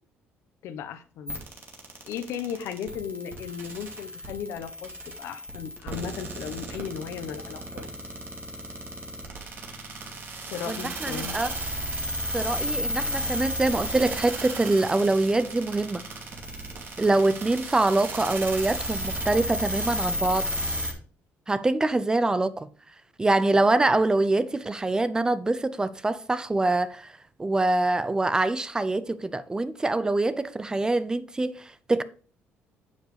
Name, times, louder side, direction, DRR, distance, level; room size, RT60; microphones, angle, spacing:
voice 1, 0.6-1.4 2.0-7.8 10.5-11.4, left 8 dB, 80° left, 1.0 m, -36 dB
sound 1, 1.3-20.9, equal, 50° right, 2.5 m, -33 dB
voice 2, 10.7-11.5 12.3-16.0 17.0-20.5 21.5-22.7 23.2-27.1 27.4-32.0, right 2 dB, 15° right, 0.5 m, -24 dB
9.5 x 7.2 x 3.3 m
cardioid pair, 115°, 5 cm